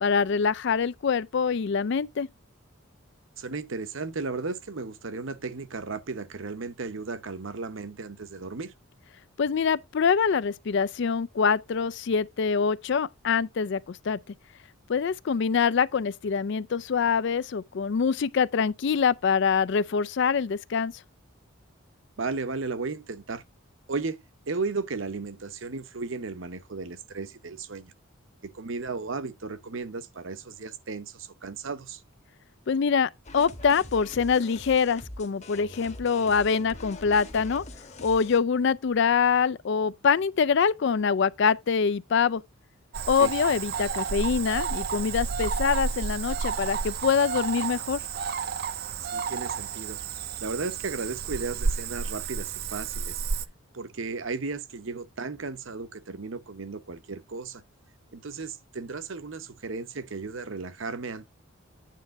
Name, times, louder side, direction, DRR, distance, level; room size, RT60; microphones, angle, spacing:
voice 1, 0.0-2.3 9.4-14.2 14.9-20.9 32.7-37.6 38.0-42.4 43.1-48.0, left 6 dB, 55° left, 0.4 m, -25 dB
voice 2, 3.4-8.7 22.2-23.4 23.9-27.9 28.5-32.0 43.2-43.3 49.0-50.0 50.4-53.2 53.7-57.6 58.1-61.2, right 4 dB, 65° right, 0.8 m, -35 dB
sound 1, 33.2-38.4, left 2 dB, 35° left, 1.1 m, -43 dB
Cricket / Frog, 42.9-53.5, right 5 dB, 45° right, 0.5 m, -31 dB
9.3 x 3.4 x 6.3 m
head